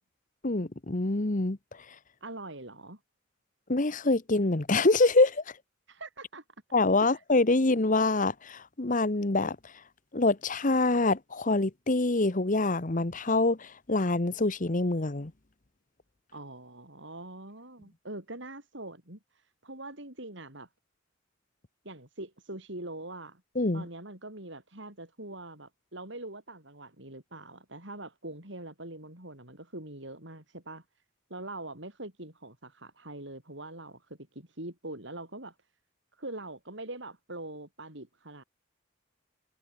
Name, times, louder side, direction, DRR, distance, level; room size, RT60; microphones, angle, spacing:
voice 1, 0.4-1.6 3.7-5.4 6.7-9.6 10.1-15.3 23.5-23.8, left 2 dB, 40° left, 1.2 m, -25 dB
voice 2, 2.2-3.0 5.9-6.4 7.0-7.2 16.3-19.2 19.6-20.7 21.8-23.4 23.7-30.8 31.3-34.0 34.3-35.5 36.2-38.4, right 2 dB, 60° right, 6.2 m, -43 dB
head